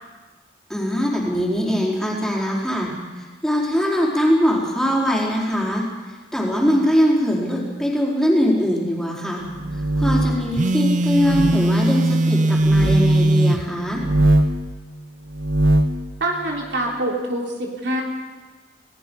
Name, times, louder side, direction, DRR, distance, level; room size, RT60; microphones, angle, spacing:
voice 1, 0.7-2.9 3.4-5.8 6.3-9.5 10.0-14.0, equal, 5° left, -4 dB, 4.6 m, -21 dB
sound 1, 9.5-10.5 11.2-11.6 12.6-13.0 13.9-14.6 15.3-16.0, right 1 dB, 90° right, 1.9 m, -20 dB
Telephone, 10.5-13.7, right 1 dB, 40° right, 0.7 m, -19 dB
voice 2, 16.2-18.0, right 1 dB, 65° right, -1 dB, 3.6 m, -25 dB
29.5 x 19.0 x 5.5 m, 1.4 s
head